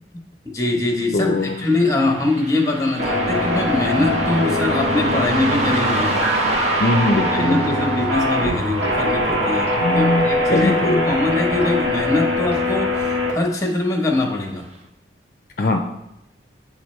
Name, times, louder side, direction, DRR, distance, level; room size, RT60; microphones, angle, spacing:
voice 1, 0.5-6.1 7.3-14.7, left 2 dB, 20° left, 1 dB, 1.0 m, -22 dB
voice 2, 1.1-1.5 6.8-7.6 9.8-11.1 15.6-15.8, left 2 dB, 50° left, 3 dB, 0.4 m, -21 dB
Car passing by, 1.4-12.2 12.5-12.6 13.5-13.7 14.2-14.3 14.8-14.9, right 2 dB, 40° right, 0.7 m, -30 dB
sound 1, 3.0-13.3, left 1 dB, 90° right, 1.7 m, -21 dB
9.2 x 3.8 x 3.2 m, 0.86 s
head